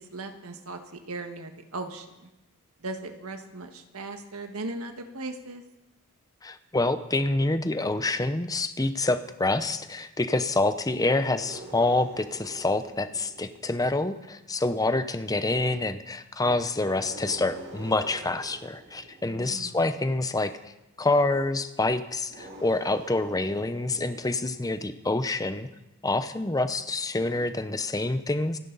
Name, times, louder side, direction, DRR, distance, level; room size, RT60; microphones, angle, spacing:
voice 1, 0.1-2.3 2.8-5.6 19.3-19.8, right 2 dB, 90° right, 5 dB, 1.7 m, -38 dB
voice 2, 6.4-20.5 21.0-25.7 26.0-28.6, left 2 dB, 15° left, 11 dB, 0.7 m, -27 dB
sound 1, 11.0-14.5 16.9-20.0 22.2-25.0, right 2 dB, 50° right, 2.7 m, -46 dB
27.5 x 10.5 x 4.1 m, 0.95 s
head